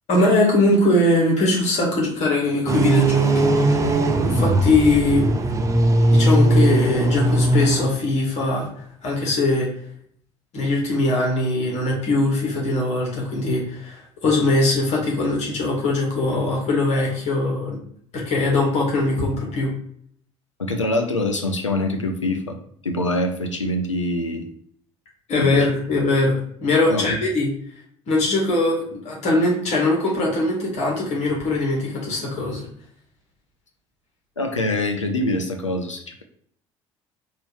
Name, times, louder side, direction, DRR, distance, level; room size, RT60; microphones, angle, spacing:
voice 1, 0.1-3.8 4.2-5.2 6.1-8.7 9.0-9.7 10.5-17.8 18.1-19.7 25.3-27.5 28.1-32.6, left 2 dB, 45° left, -2 dB, 1.7 m, -21 dB
sound 1, 2.7-7.9, right 2 dB, 20° right, 0.6 m, -18 dB
voice 2, 20.6-22.6 22.8-24.5 25.4-25.7 26.9-27.2 34.4-36.2, left 1 dB, 85° left, 5 dB, 0.5 m, -24 dB
4.1 x 2.8 x 3.5 m, 0.62 s
figure-of-eight pair, 60°, 15 cm